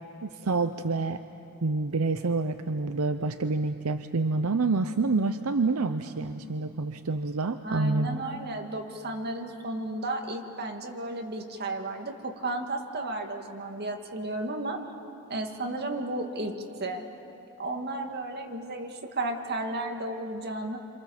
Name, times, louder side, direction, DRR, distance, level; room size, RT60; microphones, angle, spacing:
voice 1, 0.2-1.2 1.6-8.2, right 3 dB, 80° right, 9 dB, 0.7 m, -27 dB
voice 2, 7.6-14.8 15.3-17.0 17.6-20.8, right 2 dB, 50° right, 3 dB, 2.2 m, -33 dB
28.0 x 26.5 x 7.3 m, 2.9 s
head